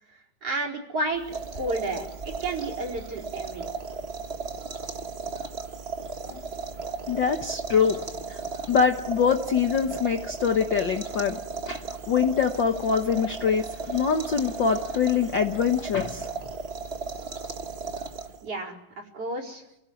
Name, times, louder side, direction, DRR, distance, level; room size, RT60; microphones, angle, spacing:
voice 1, 0.4-1.2 1.5-3.7 18.4-19.6, right 2 dB, 40° right, -1 dB, 5.4 m, -31 dB
sound 1, 1.1-18.5, right 4 dB, 80° right, 0.5 m, -36 dB
voice 2, 7.1-8.0 8.3-8.4 8.7-11.4 11.6-16.3, left 6 dB, 85° left, 4 dB, 1.0 m, -24 dB
29.0 x 17.5 x 9.3 m, 0.85 s
omnidirectional pair, 4.1 m